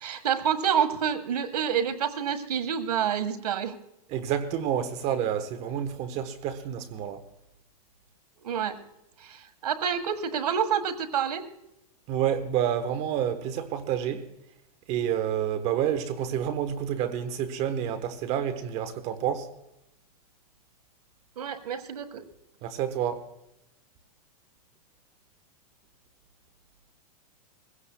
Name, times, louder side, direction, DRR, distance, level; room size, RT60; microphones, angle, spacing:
voice 1, 0.0-3.7 8.4-8.8 9.2-11.4 21.4-22.2, right 8 dB, 90° right, 1.6 m, -28 dB
voice 2, 4.1-7.2 12.1-14.2 14.9-19.5 22.6-23.3, right 9 dB, 35° right, 1.1 m, -29 dB
22.0 x 16.0 x 2.2 m
supercardioid pair, 145°, 19 cm